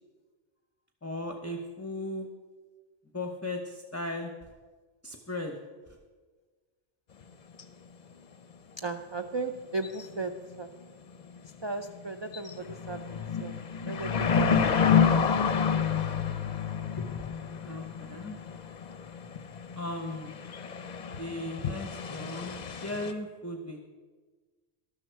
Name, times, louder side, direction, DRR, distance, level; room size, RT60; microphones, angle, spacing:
voice 1, 1.0-2.3 3.1-4.3 5.0-5.5 17.0-17.2 17.6-18.4 19.7-20.3 21.2-23.8, left 1 dB, 15° left, 3 dB, 0.8 m, -37 dB
sound 1, 7.2-7.3 7.6-7.7 9.8-10.2 10.5-10.6 11.1-11.5 11.9-12.0 12.3-23.1, left 7 dB, 45° left, 0.7 m, -29 dB
voice 2, 8.8-10.3 10.6-10.7 11.6-12.5 12.9-13.5 13.9-14.5 14.7-14.9, right 3 dB, 40° right, 6 dB, 0.4 m, -35 dB
12.5 x 12.0 x 4.6 m, 1.4 s
omnidirectional pair, 1.1 m